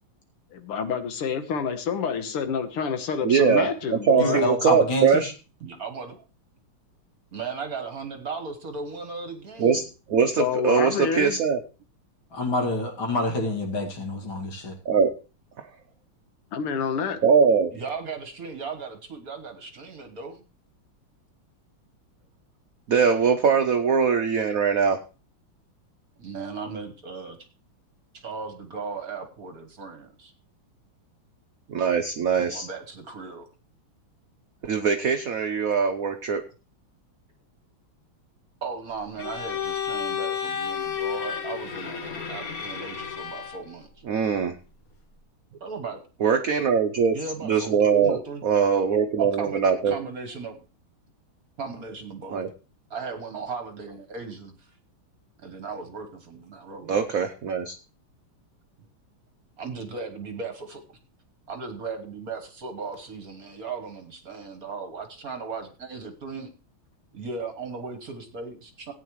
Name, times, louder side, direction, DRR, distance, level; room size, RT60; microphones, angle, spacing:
voice 1, 0.5-4.4 10.4-11.4 16.5-17.2, left 6 dB, 80° left, 8 dB, 2.1 m, -28 dB
voice 2, 3.2-5.3 9.6-9.8 10.1-11.6 14.9-15.1 17.2-17.7 22.9-25.0 31.7-32.7 34.6-36.4 44.1-44.5 46.2-47.2 47.4-50.0 52.3-52.5 56.9-57.8, right 6 dB, 75° right, 7 dB, 0.8 m, -22 dB
voice 3, 4.2-5.2 12.3-14.8, left 1 dB, 65° left, 1 dB, 2.9 m, -27 dB
voice 4, 5.6-6.2 7.3-9.9 17.7-20.4 26.2-27.4 28.1-30.3 32.4-33.5 38.6-43.9 45.6-46.0 47.1-48.4 49.2-50.6 51.6-52.4 52.9-54.7 55.4-57.0 59.6-60.8 61.5-66.5 67.1-68.9, right 4 dB, 50° right, 7 dB, 1.4 m, -37 dB
Bowed string instrument, 39.2-43.7, left 8 dB, 45° left, 1.5 m, -31 dB
17.5 x 9.2 x 3.1 m, 0.34 s
omnidirectional pair, 2.4 m